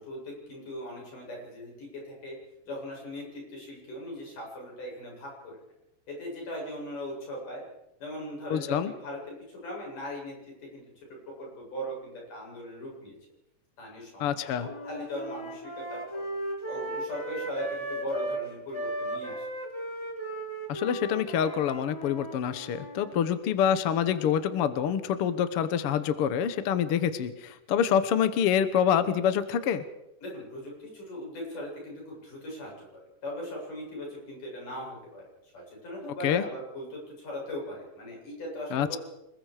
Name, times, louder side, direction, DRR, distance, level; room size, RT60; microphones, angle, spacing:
voice 1, 0.0-2.4 2.7-5.6 6.1-7.6 8.0-10.3 10.6-11.1 11.4-13.2 13.8-16.2 16.7-19.5 30.2-39.0, left 1 dB, 80° left, -2 dB, 9.8 m, -39 dB
voice 2, 8.5-8.9 14.2-14.7 20.7-29.8 36.2-36.4 38.7-39.0, left 8 dB, 60° left, 12 dB, 1.6 m, -26 dB
sound 1, 14.6-18.4 18.7-23.1, right 1 dB, 10° left, 3.1 m, -36 dB
27.0 x 21.0 x 5.0 m, 0.88 s
omnidirectional pair, 3.6 m